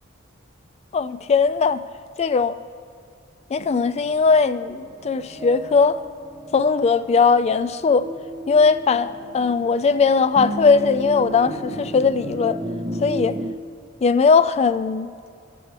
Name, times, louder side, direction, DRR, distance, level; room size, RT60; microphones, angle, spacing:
voice 1, 0.9-1.8 2.2-2.6 3.5-6.0 6.5-8.1 8.5-12.6 13.0-13.4 14.0-15.1, left 5 dB, 30° left, 0.3 m, -19 dB
sound 1, 3.6-13.5, right 1 dB, 25° right, 0.5 m, -34 dB
17.5 x 6.9 x 3.2 m
head